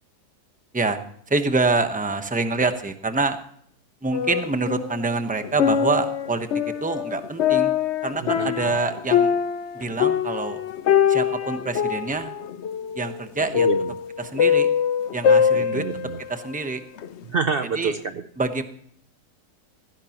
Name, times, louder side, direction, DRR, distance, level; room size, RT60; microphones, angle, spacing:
voice 1, 1.3-3.4 4.0-6.5 6.8-7.7 8.0-9.3 9.7-10.6 11.1-12.3 13.0-13.7 14.2-14.7 15.1-15.8 16.3-16.8 17.7-17.9 18.4-18.6, right 3 dB, 10° right, 8 dB, 0.6 m, -26 dB
sound 1, 4.1-5.0 5.4-16.5 17.0-17.1, left 8 dB, 55° left, 0.8 m, -23 dB
voice 2, 8.2-8.7 13.5-13.9 15.5-16.2 17.3-18.2, right 5 dB, 75° right, 9 dB, 0.5 m, -28 dB
16.0 x 16.0 x 3.0 m, 0.63 s
omnidirectional pair, 1.8 m